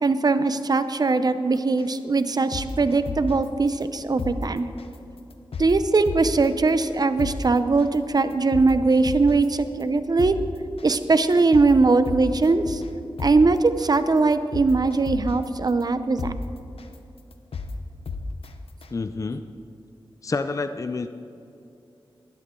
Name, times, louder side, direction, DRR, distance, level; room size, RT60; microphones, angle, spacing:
voice 1, 0.0-4.6 5.6-10.3 10.8-12.8 13.2-16.3, right 3 dB, 45° right, 11 dB, 0.7 m, -21 dB
sound 1, 1.8-1.9 2.3-3.4 3.8-3.9 4.2-4.3 4.8-5.0 5.3-5.7 6.1-6.5 6.8-6.9 7.2-7.3 7.8-8.0 8.3-9.4 9.8-9.9 10.2-10.3 10.8-11.0 11.3-11.7 12.1-12.9 13.2-13.3 13.8-13.9 14.3-15.4 15.8-15.9 16.2-16.3 16.8-16.9 17.3-17.7 18.1-18.5 18.8-18.9, left 5 dB, 85° left, 0.9 m, -32 dB
voice 2, 18.9-19.4 20.2-21.1, left 3 dB, 35° left, 9 dB, 0.5 m, -28 dB
19.0 x 12.5 x 3.7 m, 2.7 s
wide cardioid pair, 110°, 9 cm